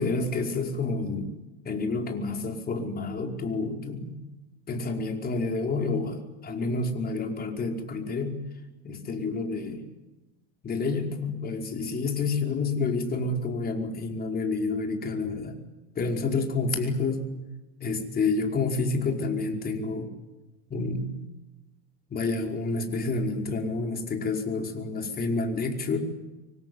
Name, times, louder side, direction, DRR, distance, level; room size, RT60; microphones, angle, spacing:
voice 1, 0.0-1.3 1.6-4.1 4.7-8.4 8.8-9.9 10.6-15.6 15.9-17.2 17.8-20.1 20.7-21.1 22.1-26.0, left 3 dB, 25° left, 3 dB, 5.0 m, -29 dB
25.0 x 24.5 x 9.6 m, 1.1 s
supercardioid pair, 115°, 35 cm